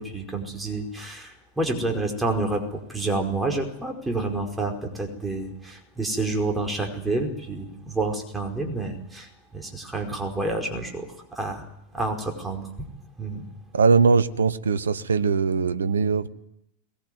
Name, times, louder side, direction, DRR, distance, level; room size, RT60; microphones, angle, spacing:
voice 1, 0.0-11.6 11.9-12.7 13.2-13.4, right 2 dB, 10° right, 2 dB, 5.0 m, -29 dB
voice 2, 13.7-16.3, right 5 dB, 70° right, 15 dB, 1.1 m, -21 dB
22.5 x 20.0 x 9.4 m, 0.78 s
figure-of-eight pair, 90°, 0 cm